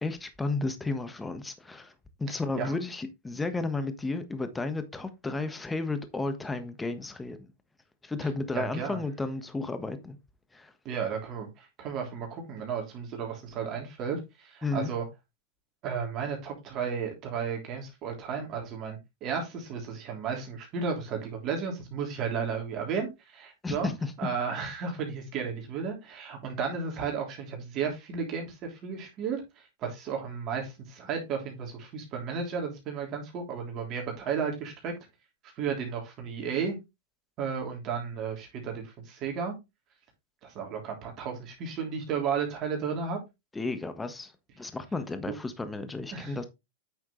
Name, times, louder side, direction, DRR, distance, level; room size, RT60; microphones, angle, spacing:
voice 1, 0.0-1.9 2.2-7.5 8.0-10.2 10.5-10.7 14.6-14.9 23.6-24.1 43.5-46.4, left 3 dB, 10° left, 1.3 m, -33 dB
voice 2, 2.3-2.7 8.5-9.0 10.8-15.1 15.8-23.9 24.2-29.4 29.8-34.9 35.6-36.8 37.4-39.5 40.4-43.2 46.1-46.5, right 6 dB, 40° right, 3.2 m, -33 dB
8.9 x 6.2 x 3.2 m
hypercardioid pair, 120°, 0 cm